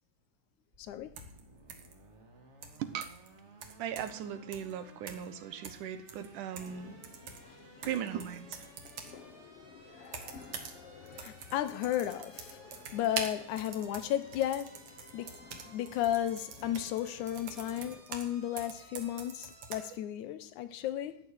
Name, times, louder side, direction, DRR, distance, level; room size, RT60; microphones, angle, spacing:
sound 1, 0.7-20.0, right 2 dB, 30° right, 1.6 m, -58 dB
voice 1, 0.8-1.1 11.1-15.3 15.6-21.2, left 11 dB, 75° left, 2.2 m, -34 dB
sound 2, 1.2-1.4 1.7-1.9 2.6-3.3 3.6-4.2 4.5-4.7 5.1-5.3 5.6-6.8 7.0-9.2 10.1-10.8 11.1-18.3 18.6-19.8, right 6 dB, 60° right, 2.6 m, -45 dB
voice 2, 2.8-3.2 3.8-7.0 7.8-8.6, right 9 dB, 85° right, 2.6 m, -38 dB
sound 3, 6.5-18.0, left 6 dB, 60° left, 1.8 m, -54 dB
14.0 x 6.7 x 9.9 m
omnidirectional pair, 3.5 m